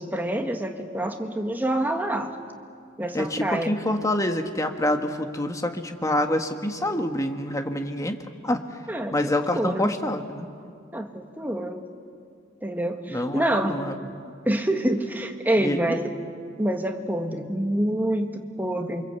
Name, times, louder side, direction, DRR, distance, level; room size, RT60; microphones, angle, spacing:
voice 1, 0.0-2.4 3.0-3.8 8.9-9.2 9.5-9.9 10.9-11.9 12.6-13.8 14.4-16.1 16.6-19.1, right 1 dB, 10° right, 4 dB, 1.6 m, -26 dB
voice 2, 3.1-8.2 8.4-8.6 9.1-10.5 13.1-13.9 15.6-16.0, left 1 dB, 15° left, 6 dB, 1.5 m, -26 dB
28.5 x 25.0 x 8.2 m, 2.3 s
head